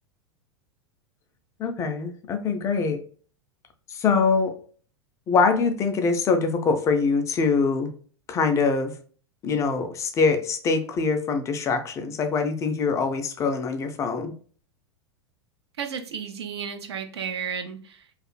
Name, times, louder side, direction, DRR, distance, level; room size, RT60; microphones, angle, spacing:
voice 1, 1.6-3.0 3.9-4.6 5.3-7.9 8.3-8.9 9.4-14.3, left 4 dB, 20° left, 7 dB, 0.3 m, -23 dB
voice 2, 15.8-18.2, right 7 dB, 65° right, 6 dB, 0.5 m, -33 dB
2.9 x 2.4 x 2.3 m, 0.43 s
figure-of-eight pair, 90°, 15 cm